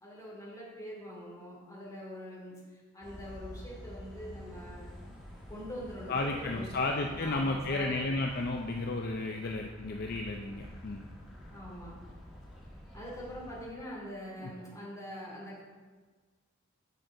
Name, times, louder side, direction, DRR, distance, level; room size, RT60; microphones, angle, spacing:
voice 1, 0.0-5.0 5.5-8.2 11.5-12.0 12.9-15.6, equal, 15° left, -6 dB, 2.5 m, -44 dB
copenhagen central trainstation about to board, 3.0-13.7, equal, ahead, 1.5 m, -48 dB
voice 2, 6.1-11.0 14.4-14.5, left 2 dB, 45° left, 2 dB, 0.4 m, -33 dB
7.9 x 6.6 x 3.8 m, 1.4 s
head